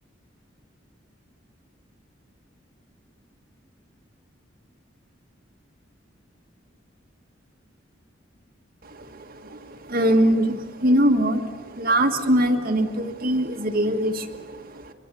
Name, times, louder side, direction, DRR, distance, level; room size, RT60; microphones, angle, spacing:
voice 1, 8.8-14.9, right 1 dB, 50° right, 3 dB, 1.8 m, -23 dB
24.0 x 23.0 x 7.0 m, 1.5 s
head